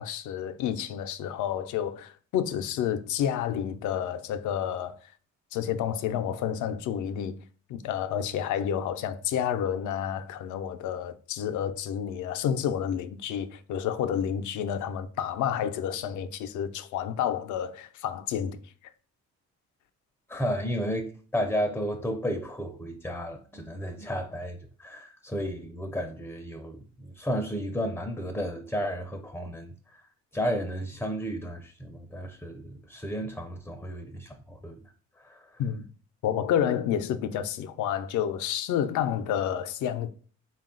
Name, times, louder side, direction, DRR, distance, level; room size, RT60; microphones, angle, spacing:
voice 1, 0.0-5.0 5.5-7.4 7.7-18.6 35.6-35.8 36.2-40.1, left 9 dB, 80° left, 0.5 m, -30 dB
voice 2, 20.3-30.1 30.3-35.6, equal, 5° left, 0.4 m, -33 dB
3.8 x 2.3 x 3.7 m
cardioid pair, 90°, 30 cm